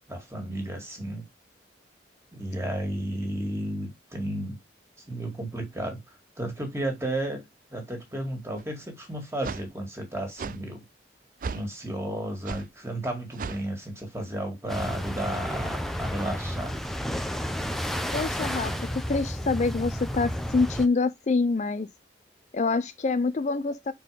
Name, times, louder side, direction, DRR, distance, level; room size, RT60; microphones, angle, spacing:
voice 1, 0.1-1.2 2.3-4.6 5.1-6.0 6.4-7.4 7.7-10.8 11.5-16.8, right 1 dB, 15° right, 2.2 m, -33 dB
sound 1, 8.6-8.7 9.4-9.7 10.4-10.6 11.4-11.7 12.4-12.7 13.4-13.6, right 5 dB, 45° right, 0.4 m, -34 dB
sound 2, 14.7-20.9, equal, ahead, 0.7 m, -31 dB
voice 2, 18.1-18.7 19.1-21.9 22.5-23.9, left 3 dB, 40° left, 0.4 m, -26 dB
5.6 x 4.5 x 5.0 m
head